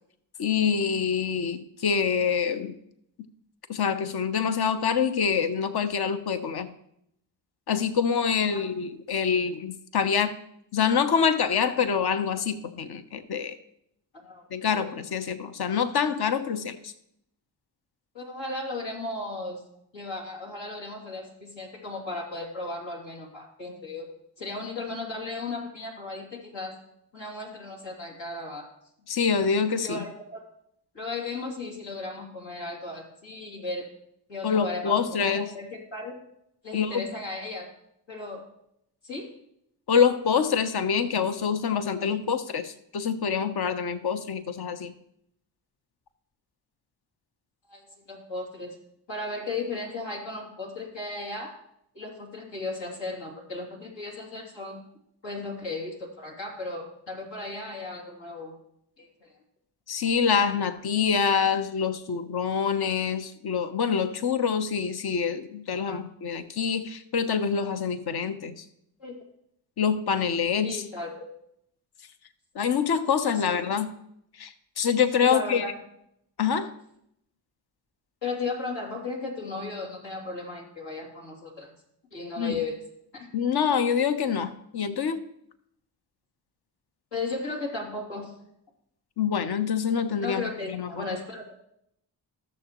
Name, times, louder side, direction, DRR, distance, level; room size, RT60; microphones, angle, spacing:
voice 1, 0.4-2.8 3.7-6.7 7.7-10.3 10.7-13.6 14.5-16.9 29.1-30.0 34.4-35.5 36.7-37.1 39.9-44.9 59.9-68.6 69.8-70.8 72.5-73.9 74.4-75.6 76.4-76.7 82.4-82.6 83.3-85.2 89.2-91.2, left 6 dB, 60° left, 10 dB, 0.9 m, -26 dB
voice 2, 14.1-14.9 18.1-19.6 19.9-24.1 24.4-26.8 27.1-28.7 29.8-30.4 30.9-33.9 34.3-36.1 36.6-37.7 38.1-38.4 39.0-39.3 47.7-48.7 49.1-51.6 51.9-54.8 55.2-58.6 59.0-59.3 65.9-66.0 69.0-69.1 70.6-71.3 73.5-73.6 75.2-75.7 78.2-81.7 82.1-82.8 83.1-83.3 87.1-88.3 90.2-91.5, left 3 dB, 80° left, -2 dB, 2.8 m, -35 dB
14.5 x 6.9 x 3.0 m, 0.75 s
supercardioid pair, 40°, 44 cm